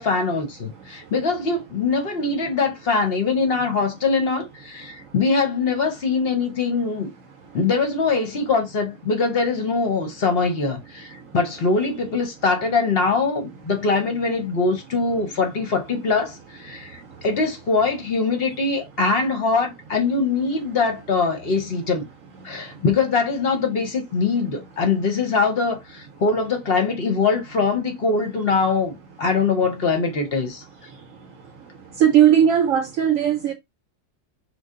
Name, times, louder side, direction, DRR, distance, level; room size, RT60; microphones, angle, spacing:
voice 1, 0.0-7.1 7.5-22.1 22.4-30.6, left 4 dB, 50° left, 0.8 m, -22 dB
voice 2, 32.0-33.5, right 10 dB, 65° right, 0.9 m, -17 dB
3.3 x 2.3 x 3.6 m
omnidirectional pair, 1.6 m